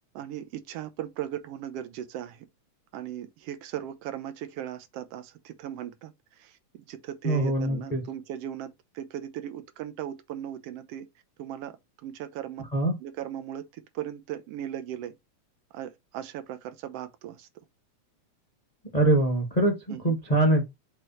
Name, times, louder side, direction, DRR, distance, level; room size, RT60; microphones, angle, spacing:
voice 1, 0.1-2.5 2.9-11.1 11.4-12.6 13.0-15.1 15.7-17.5 19.9-20.2, right 11 dB, 70° right, 1.5 m, -38 dB
voice 2, 7.2-8.0 12.7-12.9 18.9-20.6, right 2 dB, 45° left, 0.5 m, -23 dB
6.4 x 3.4 x 4.4 m
omnidirectional pair, 3.5 m